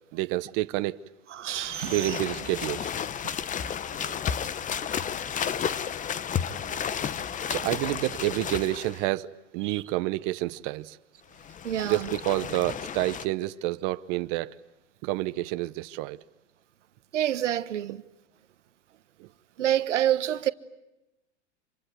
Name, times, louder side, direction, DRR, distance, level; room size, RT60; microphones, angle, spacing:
voice 1, 0.1-1.0 1.8-2.9 3.9-4.2 6.6-6.9 7.5-11.0 11.8-14.5 15.0-16.2 19.2-19.3, right 17 dB, 45° right, 0.9 m, -29 dB
voice 2, 1.3-2.2 9.6-9.8 11.6-12.1 17.1-18.0 19.6-20.5, right 11 dB, 85° right, 1.2 m, -27 dB
sound 1, 1.5-9.0 11.3-13.3, left 8 dB, 20° left, 0.9 m, -32 dB
26.5 x 23.5 x 9.3 m
hypercardioid pair, 110°, 36 cm